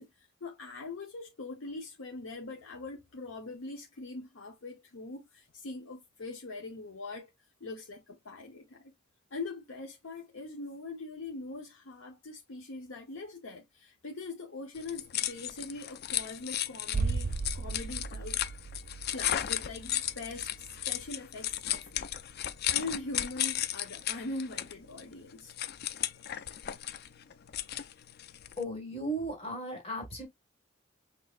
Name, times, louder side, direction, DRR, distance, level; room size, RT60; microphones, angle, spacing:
voice 1, 0.0-7.3 7.6-8.9 9.3-18.4 19.1-22.0 22.7-25.5, left 3 dB, 85° left, 0.9 m, -42 dB
sound 1, 14.7-28.6, left 12 dB, 55° left, 0.4 m, -35 dB
sound 2, 16.9-22.7 22.9-23.0, right 4 dB, 45° right, 0.4 m, -37 dB
voice 2, 28.6-30.3, right 1 dB, 30° left, 1.8 m, -36 dB
6.1 x 2.7 x 2.4 m
head